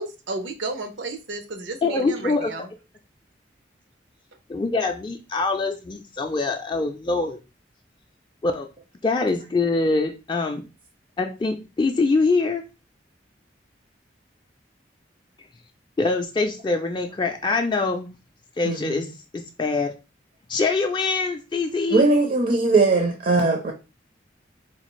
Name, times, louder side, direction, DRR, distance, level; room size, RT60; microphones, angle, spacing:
voice 1, 0.0-2.7, right 2 dB, 90° right, 0.7 m, -33 dB
voice 2, 1.8-2.5 4.5-7.4 8.4-8.7 9.0-10.6 11.2-12.6 16.0-18.1 18.6-19.1 19.3-19.9 20.5-22.0, left 3 dB, 25° left, 0.3 m, -24 dB
voice 3, 18.6-19.0 21.9-23.7, right 3 dB, 45° right, 0.5 m, -20 dB
4.1 x 2.3 x 3.0 m
head